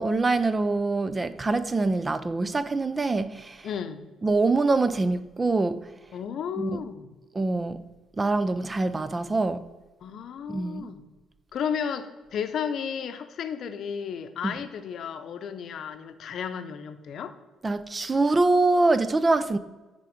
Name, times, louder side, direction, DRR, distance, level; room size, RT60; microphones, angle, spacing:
voice 1, 0.0-3.7 4.2-5.9 6.6-6.8 7.3-7.8 8.2-9.6 10.5-10.9 14.4-14.5 17.6-19.6, right 3 dB, 25° right, 0.4 m, -24 dB
voice 2, 3.6-4.0 6.1-7.2 10.0-11.0 11.5-17.4, left 7 dB, 65° left, 0.7 m, -33 dB
10.0 x 3.7 x 5.0 m
cardioid pair, 85°, 0 cm